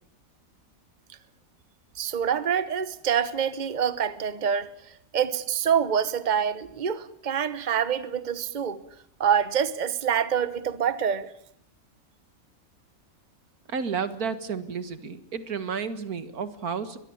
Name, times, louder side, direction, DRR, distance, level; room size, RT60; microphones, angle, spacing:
voice 1, 2.0-8.8 9.2-11.3, right 8 dB, 35° right, 1.2 m, -26 dB
voice 2, 13.7-17.0, right 6 dB, 85° right, 2.1 m, -31 dB
22.5 x 22.5 x 7.1 m
omnidirectional pair, 1.5 m